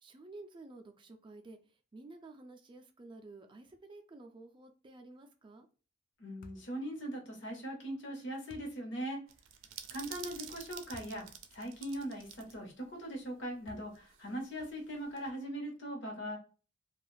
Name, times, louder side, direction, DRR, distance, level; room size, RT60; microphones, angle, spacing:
voice 1, 0.0-5.7, right 2 dB, 25° right, 0.3 m, -52 dB
voice 2, 6.2-9.2 9.9-16.4, right 1 dB, 65° left, 0.9 m, -40 dB
sound 1, 6.4-6.8 8.5-8.8 10.9-11.2 11.8-11.9 13.7-14.1, left 2 dB, 45° left, 0.3 m, -53 dB
sound 2, 9.3-12.6 12.8-12.9 13.9-15.3, right 9 dB, 90° right, 0.4 m, -49 dB
2.4 x 2.3 x 3.1 m
head